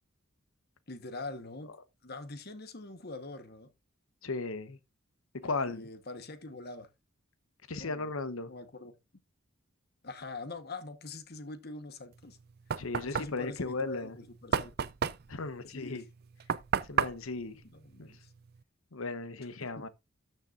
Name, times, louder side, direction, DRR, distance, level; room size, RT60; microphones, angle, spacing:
voice 1, 0.9-1.7 2.0-3.7 5.7-6.9 7.8-8.1 8.5-8.9 10.0-12.4 13.0-14.7 15.7-16.0 17.6-18.3 19.4-19.9, left 2 dB, 50° left, 1.2 m, -44 dB
voice 2, 4.2-4.8 5.4-5.9 7.7-8.5 12.8-14.2 15.3-16.0 16.8-17.6 18.0-18.1 18.9-19.9, left 3 dB, 75° left, 1.0 m, -36 dB
Knock, 12.2-18.6, right 7 dB, 50° right, 0.4 m, -34 dB
13.0 x 6.8 x 2.5 m
head